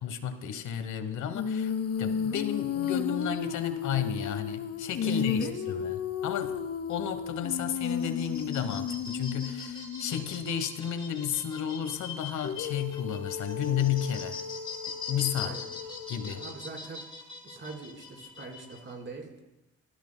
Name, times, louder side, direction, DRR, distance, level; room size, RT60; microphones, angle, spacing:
voice 1, 0.0-1.7 2.0-6.6 6.9-14.4 15.1-15.6 16.1-16.4, left 9 dB, 75° left, 10 dB, 1.1 m, -32 dB
Female singing, 1.3-10.2 12.4-16.6, left 7 dB, 55° left, 0.8 m, -34 dB
voice 2, 5.0-5.9 15.3-15.6 16.3-17.0 17.4-19.3, right 3 dB, 40° right, -1 dB, 4.1 m, -42 dB
sound 1, 7.7-18.9, left 4 dB, 15° left, 4.6 m, -42 dB
25.5 x 14.5 x 2.2 m, 0.98 s
cardioid pair, 90°, 30 cm